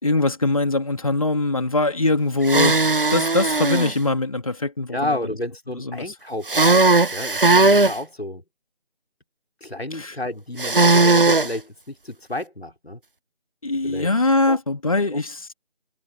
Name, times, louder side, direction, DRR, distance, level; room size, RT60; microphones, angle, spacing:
voice 1, 0.0-2.8 3.1-5.2 5.8-6.1 9.9-10.2 13.6-15.5, left 2 dB, 35° left, 2.9 m, -22 dB
sound 1, 2.4-3.9 6.5-8.0 10.6-11.5, right 3 dB, 55° right, 0.9 m, -17 dB
voice 2, 4.9-8.4 9.6-13.0 13.8-14.1 14.5-14.6 15.1-15.2, left 1 dB, 70° left, 3.3 m, -31 dB
figure-of-eight pair, 165°, 32 cm